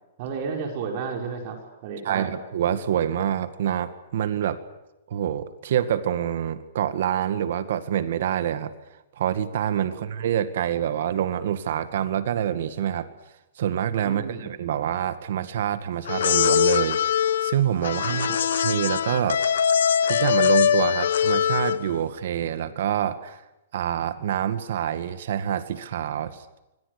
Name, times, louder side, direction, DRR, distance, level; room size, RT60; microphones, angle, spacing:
voice 1, 0.2-2.4 9.9-10.1 14.0-14.5 17.8-18.5, right 5 dB, 35° right, 3 dB, 5.5 m, -33 dB
voice 2, 2.0-4.6 5.1-8.7 9.2-13.1 13.6-19.4 20.0-23.4 23.7-26.4, right 10 dB, 55° right, 11 dB, 2.0 m, -26 dB
sound 1, 16.0-21.9, left 8 dB, 75° left, 1.2 m, -22 dB
26.5 x 25.5 x 6.7 m, 0.95 s
hypercardioid pair, 170°, 0 cm